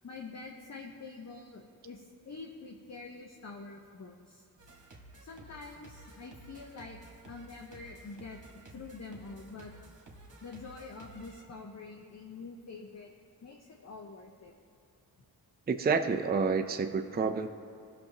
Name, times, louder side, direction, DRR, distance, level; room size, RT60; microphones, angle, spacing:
voice 1, 0.0-4.4 5.2-7.0 7.2-8.4 8.7-9.7 10.4-13.1 13.4-14.5, left 4 dB, 40° left, 1 dB, 0.9 m, -46 dB
sound 1, 4.6-11.4, right 2 dB, 50° right, 1.7 m, -53 dB
voice 2, 15.7-17.5, right 5 dB, 25° right, 5 dB, 0.5 m, -29 dB
16.0 x 6.4 x 2.9 m, 2.4 s
cardioid pair, 60°, 40 cm